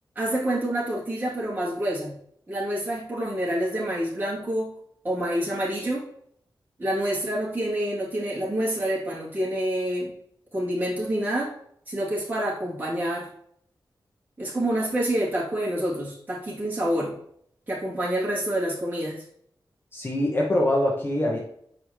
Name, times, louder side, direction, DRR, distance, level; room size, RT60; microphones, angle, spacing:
voice 1, 0.2-2.1 2.5-4.7 5.0-6.0 6.8-10.1 10.5-11.5 11.9-13.3 14.4-17.2 17.7-19.2, right 1 dB, 25° right, -7 dB, 2.6 m, -27 dB
voice 2, 19.9-21.4, left 1 dB, 30° left, -2 dB, 1.1 m, -23 dB
7.0 x 4.9 x 3.0 m, 0.67 s
wide cardioid pair, 140°, 8 cm